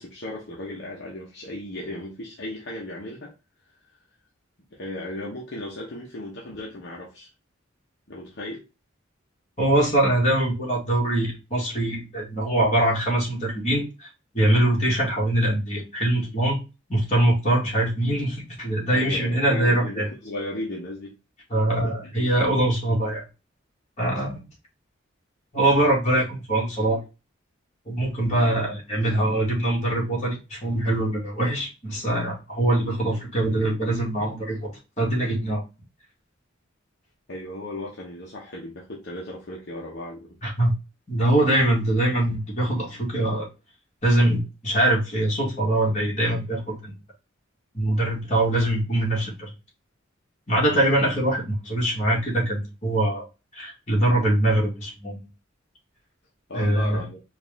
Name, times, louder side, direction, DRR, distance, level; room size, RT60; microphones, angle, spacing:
voice 1, 0.0-3.3 4.7-7.3 8.1-8.6 18.9-21.2 21.8-22.1 37.3-40.4 56.5-57.2, left 1 dB, 55° left, -3 dB, 1.0 m, -36 dB
voice 2, 9.6-14.1 14.3-16.6 16.9-20.1 21.5-23.2 24.0-24.5 25.5-27.0 27.9-34.7 35.0-35.6 40.4-40.7 41.1-43.5 44.0-46.9 47.7-49.5 50.5-53.2 53.5-55.2 56.5-57.0, right 1 dB, 35° left, -4 dB, 2.0 m, -23 dB
4.8 x 2.6 x 3.4 m, 0.28 s
head